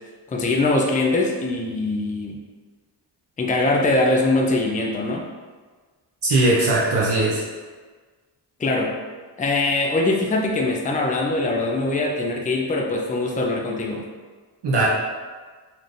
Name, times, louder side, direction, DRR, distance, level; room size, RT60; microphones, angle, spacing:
voice 1, 0.3-2.4 3.4-5.3 8.6-8.9 9.4-14.0, left 2 dB, 20° left, 0 dB, 0.5 m, -22 dB
voice 2, 6.2-7.4 14.6-14.8, right 2 dB, 70° right, -6 dB, 0.9 m, -19 dB
4.3 x 3.2 x 2.5 m, 1.4 s
cardioid pair, 85°, 43 cm